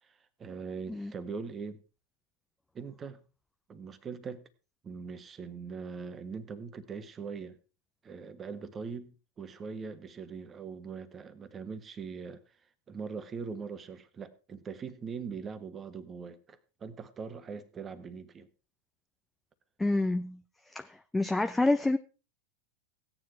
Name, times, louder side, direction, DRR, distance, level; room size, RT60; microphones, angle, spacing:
voice 1, 0.0-1.8 2.7-3.2 3.7-4.5 4.8-7.6 8.0-12.4 12.9-18.5, right 5 dB, 20° right, 1.5 m, -41 dB
voice 2, 19.8-20.4 20.7-22.0, left 2 dB, 5° left, 0.7 m, -28 dB
16.5 x 9.7 x 4.6 m
figure-of-eight pair, 90°, 0 cm